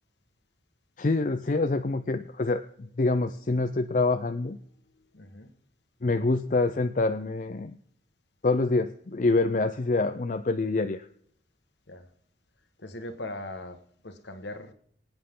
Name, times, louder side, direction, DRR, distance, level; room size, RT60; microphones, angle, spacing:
voice 1, 1.0-4.6 6.0-7.7 8.4-11.1, left 3 dB, 40° left, 9 dB, 0.5 m, -26 dB
voice 2, 4.9-5.5 11.9-12.1 12.8-14.7, left 1 dB, 65° left, 7 dB, 1.5 m, -40 dB
24.5 x 8.9 x 3.7 m, 0.66 s
head